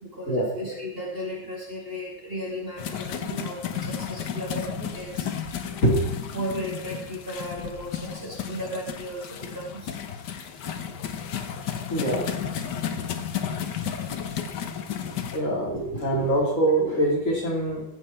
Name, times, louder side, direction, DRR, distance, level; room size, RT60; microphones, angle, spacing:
voice 1, 0.0-5.3 6.3-10.0 13.3-13.9, equal, 30° right, -3 dB, 2.3 m, -35 dB
sound 1, 2.8-15.4, left 8 dB, 60° left, 1.4 m, -33 dB
voice 2, 11.9-12.4 15.0-17.8, right 1 dB, 40° left, -3 dB, 3.4 m, -24 dB
15.5 x 7.7 x 4.4 m, 0.87 s
omnidirectional pair, 2.2 m